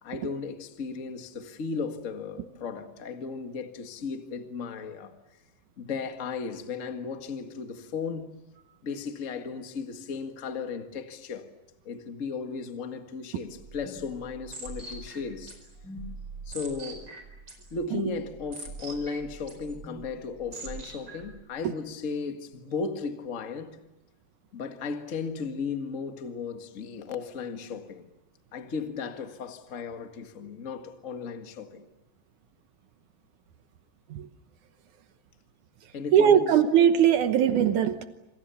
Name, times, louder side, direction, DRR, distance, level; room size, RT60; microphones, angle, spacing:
voice 1, 0.0-5.1 5.8-8.3 8.8-11.5 11.8-15.5 16.4-17.1 17.7-23.8 24.5-28.1 28.5-31.9 35.9-36.6, left 5 dB, 30° left, 1.5 m, -35 dB
sound 1, 13.5-21.4, right 2 dB, 30° right, 5.3 m, -43 dB
voice 2, 36.1-38.1, right 9 dB, 70° right, 2.4 m, -20 dB
27.5 x 27.0 x 7.0 m
omnidirectional pair, 3.8 m